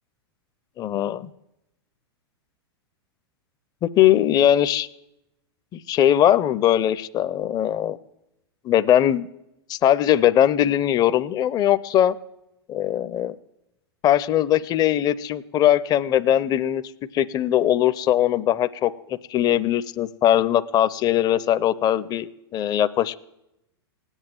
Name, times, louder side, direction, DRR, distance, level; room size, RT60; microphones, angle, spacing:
voice 1, 0.8-1.3 3.8-4.9 5.7-8.0 8.6-9.3 9.7-12.2 12.7-13.3 14.0-16.8 17.1-18.9 19.3-23.2, left 11 dB, 30° left, 13 dB, 0.6 m, -20 dB
18.0 x 8.1 x 9.0 m, 0.89 s
hypercardioid pair, 110°, 14 cm